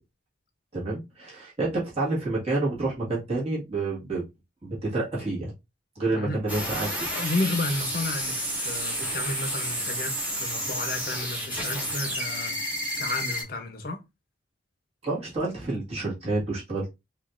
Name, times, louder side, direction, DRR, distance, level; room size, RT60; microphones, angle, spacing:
voice 1, 0.7-4.2 4.6-5.5 6.0-7.1 15.0-16.9, right 2 dB, 30° right, 1.7 m, -29 dB
sound 1, 6.5-13.4, equal, 10° right, 1.5 m, -30 dB
voice 2, 7.1-12.6 13.0-14.0, left 2 dB, 45° left, 0.8 m, -32 dB
5.0 x 2.5 x 2.5 m
head